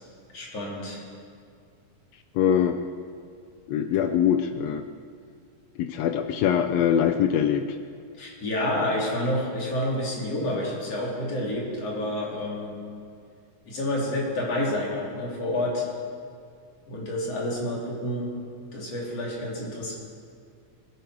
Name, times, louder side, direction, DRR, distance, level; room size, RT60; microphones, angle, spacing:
voice 1, 0.3-1.0 8.2-12.8 13.7-15.9 16.9-18.3 18.7-19.9, left 1 dB, 55° left, -3 dB, 3.6 m, -29 dB
voice 2, 2.4-2.8 3.7-4.8 5.8-7.6, left 9 dB, 80° left, 7 dB, 1.6 m, -23 dB
20.0 x 11.0 x 4.7 m, 2.3 s
omnidirectional pair, 3.5 m